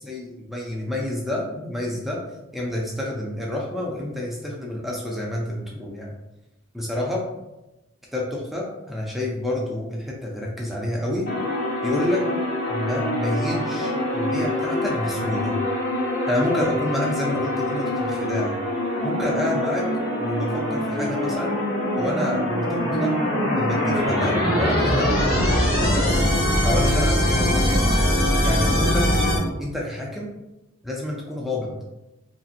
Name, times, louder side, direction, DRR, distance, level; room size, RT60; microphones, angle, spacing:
voice 1, 0.0-2.2 2.5-6.1 6.7-7.2 8.1-11.3 11.8-12.2 12.7-15.5 16.3-18.6 19.0-19.8 20.2-21.5 22.0-23.1 23.5-26.2 26.6-27.9 28.4-29.1 29.6-30.3 30.8-31.7, left 1 dB, ahead, -3 dB, 0.3 m, -28 dB
sound 1, 11.3-29.4, left 1 dB, 45° left, 1.0 m, -23 dB
2.8 x 2.8 x 2.4 m, 0.97 s
head